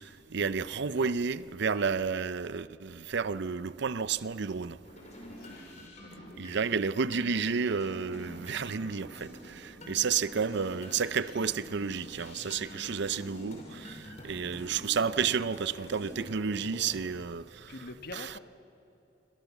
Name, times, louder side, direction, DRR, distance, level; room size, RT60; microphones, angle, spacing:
voice 1, 0.0-4.8 6.4-17.7 18.1-18.3, right 6 dB, 65° right, 0.6 m, -31 dB
sound 1, 4.8-17.1, equal, 40° left, 5.7 m, -47 dB
voice 2, 5.3-6.4 12.4-13.0 17.7-18.4, left 2 dB, 55° left, 1.4 m, -47 dB
27.5 x 24.0 x 7.3 m
head